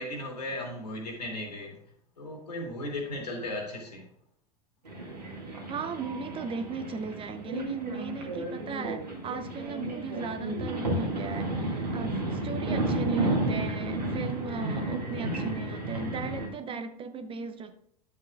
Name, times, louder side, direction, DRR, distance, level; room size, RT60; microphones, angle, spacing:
voice 1, 0.0-1.8 2.2-4.1, left 1 dB, 75° left, 1 dB, 2.5 m, -36 dB
sound 1, 4.8-16.5, right 1 dB, 85° right, 1.9 m, -32 dB
voice 2, 5.7-17.7, right 5 dB, 25° right, 9 dB, 0.7 m, -37 dB
10.5 x 7.6 x 2.3 m, 0.70 s
figure-of-eight pair, 80°, 21 cm